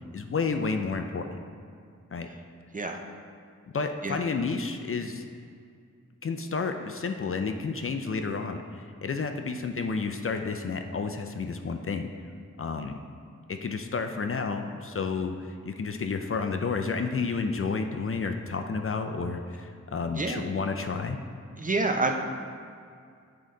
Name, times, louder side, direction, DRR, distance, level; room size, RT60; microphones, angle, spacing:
voice 1, 0.0-1.4 2.1-2.3 3.7-5.2 6.2-12.1 12.6-13.0 13.5-21.2, left 4 dB, 45° left, 6 dB, 0.4 m, -31 dB
voice 2, 20.1-20.5 21.6-22.1, right 3 dB, 25° right, 3 dB, 0.5 m, -27 dB
7.2 x 3.9 x 3.8 m, 2.3 s
wide cardioid pair, 60°, 31 cm